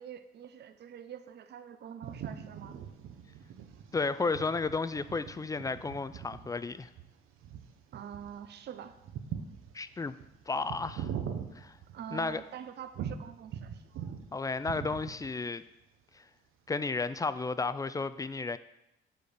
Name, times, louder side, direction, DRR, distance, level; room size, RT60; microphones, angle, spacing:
voice 1, 0.0-2.8 7.9-8.9 11.9-13.9, right 9 dB, 55° right, 0.6 m, -45 dB
sound 1, 2.0-12.4 12.9-14.3 14.5-15.4, right 8 dB, 85° right, 0.9 m, -42 dB
voice 2, 3.9-6.9 9.7-10.1 10.5-11.1 11.6-11.7 12.1-12.4 14.3-15.6 16.7-18.6, left 3 dB, 15° left, 0.3 m, -33 dB
7.8 x 4.3 x 6.8 m
cardioid pair, 110°, 21 cm